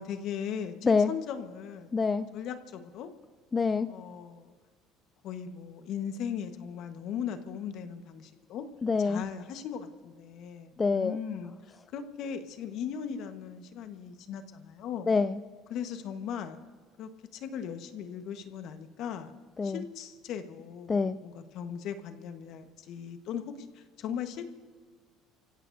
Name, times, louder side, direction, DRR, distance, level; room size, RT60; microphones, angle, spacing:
voice 1, 0.0-1.9 2.3-3.1 3.9-4.5 5.2-8.7 9.0-15.1 15.7-16.6 17.0-19.3 19.6-24.4, left 8 dB, 65° left, 8 dB, 1.4 m, -38 dB
voice 2, 1.9-2.3 3.5-3.9 8.8-9.2 10.8-11.2 15.1-15.4 19.6-19.8 20.9-21.2, left 4 dB, 25° left, 11 dB, 0.5 m, -26 dB
29.0 x 16.0 x 2.7 m, 1.5 s
supercardioid pair, 90°, 0 cm